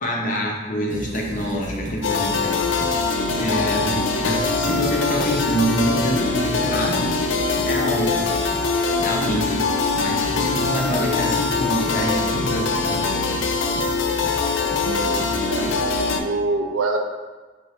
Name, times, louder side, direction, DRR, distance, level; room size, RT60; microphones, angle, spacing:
voice 1, 0.0-2.6 3.4-7.1 7.6-8.3 9.0-9.6 9.9-13.1, equal, 40° left, -1 dB, 0.6 m, -26 dB
sound 1, 0.9-16.1, equal, 45° right, 0.8 m, -34 dB
sound 2, 2.0-16.2, left 4 dB, 80° left, 0.4 m, -23 dB
voice 2, 14.8-15.7 16.2-17.0, right 3 dB, 80° right, 3 dB, 0.5 m, -25 dB
4.4 x 2.8 x 3.2 m, 1.3 s
head